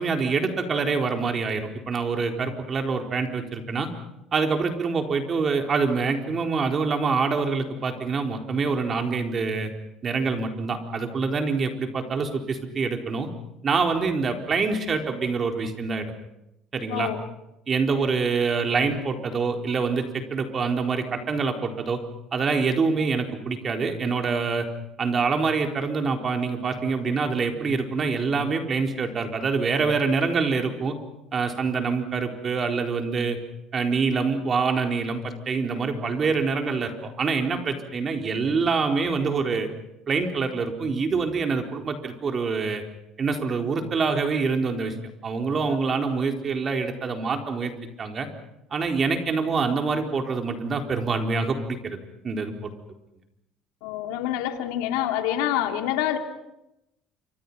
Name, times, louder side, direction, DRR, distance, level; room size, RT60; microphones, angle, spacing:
voice 1, 0.0-3.9 4.3-9.7 10.0-13.3 13.6-16.1 16.7-17.1 17.7-22.0 22.3-24.7 25.0-30.9 31.3-33.4 33.7-39.7 40.1-42.8 43.2-44.9 45.2-47.7 48.0-48.3 48.7-52.0 52.2-52.5, right 4 dB, 35° right, 4 dB, 4.1 m, -25 dB
voice 2, 53.8-56.2, left 11 dB, 90° left, 5 dB, 2.5 m, -26 dB
28.5 x 25.5 x 5.7 m, 0.86 s
cardioid pair, 115°, 0 cm